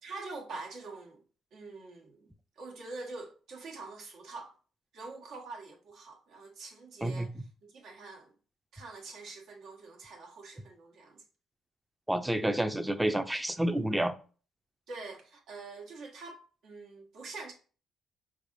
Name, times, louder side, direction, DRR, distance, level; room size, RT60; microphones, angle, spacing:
voice 1, 0.0-1.2 1.5-2.3 2.6-4.5 4.9-7.3 7.6-8.3 8.7-11.2 14.9-17.5, right 3 dB, 80° right, 1.2 m, -45 dB
voice 2, 12.1-14.1, right 1 dB, 5° right, 0.4 m, -29 dB
4.7 x 3.3 x 2.5 m
cardioid pair, 90°, 0 cm